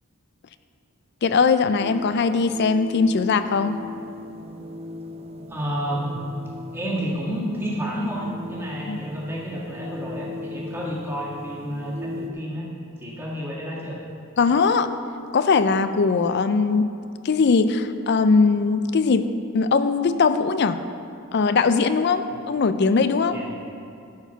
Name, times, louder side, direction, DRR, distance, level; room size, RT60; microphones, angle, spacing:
voice 1, 1.2-3.8 8.9-9.1 14.4-14.9 15.3-16.9 17.2-20.8 21.3-23.4, left 4 dB, 45° left, 11 dB, 0.4 m, -20 dB
sound 1, 1.8-12.3, left 1 dB, 25° right, 0.4 m, -38 dB
voice 2, 5.5-6.4 6.7-12.6 13.0-14.0 23.3-23.5, equal, 10° right, -5 dB, 1.6 m, -30 dB
11.0 x 4.6 x 6.9 m, 2.6 s
head